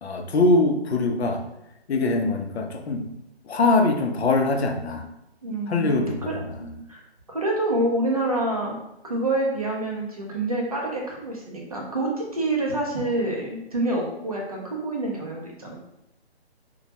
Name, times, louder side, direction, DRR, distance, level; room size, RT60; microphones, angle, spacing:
voice 1, 0.0-1.4 1.9-3.1 3.5-5.1 5.7-6.8, left 2 dB, 75° left, 4 dB, 0.5 m, -23 dB
voice 2, 5.4-6.3 6.9-7.0 7.3-8.8 9.0-15.7, right 2 dB, 35° right, -1 dB, 0.4 m, -27 dB
2.1 x 2.1 x 2.7 m, 0.87 s
hypercardioid pair, 165°, 32 cm